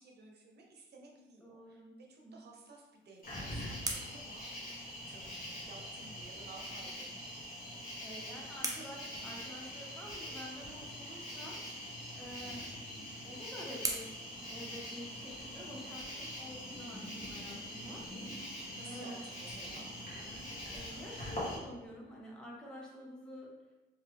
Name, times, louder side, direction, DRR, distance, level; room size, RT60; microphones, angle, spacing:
voice 1, 0.0-4.5 5.1-5.4 5.6-7.2 12.9-13.2 18.2-19.9, right 3 dB, 55° right, 0 dB, 0.8 m, -55 dB
voice 2, 1.4-1.9 2.2-2.3 8.0-11.6 12.1-12.7 13.2-14.1 14.4-18.1 18.8-19.2 20.7-23.5, equal, 5° left, -4 dB, 0.9 m, -48 dB
sound 1, 2.9-5.4 7.5-10.0 12.2-15.3, right 2 dB, 15° right, 0.5 m, -45 dB
Cricket, 3.2-21.6, equal, 45° left, 1.2 m, -44 dB
2.9 x 2.3 x 3.2 m, 1.1 s
cardioid pair, 90°, 20 cm